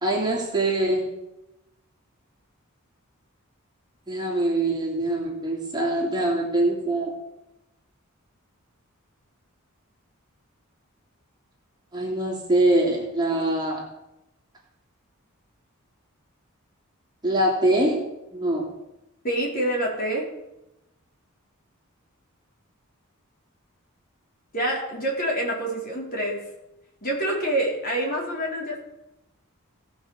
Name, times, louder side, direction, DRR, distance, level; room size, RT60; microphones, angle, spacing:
voice 1, 0.0-1.1 4.1-7.1 11.9-13.9 17.2-18.0 18.3-18.7, right 1 dB, 20° right, -2 dB, 3.0 m, -23 dB
voice 2, 19.2-20.2 24.5-26.4 27.0-28.8, right 1 dB, 45° left, -2 dB, 4.3 m, -26 dB
18.0 x 6.2 x 6.6 m, 0.91 s
head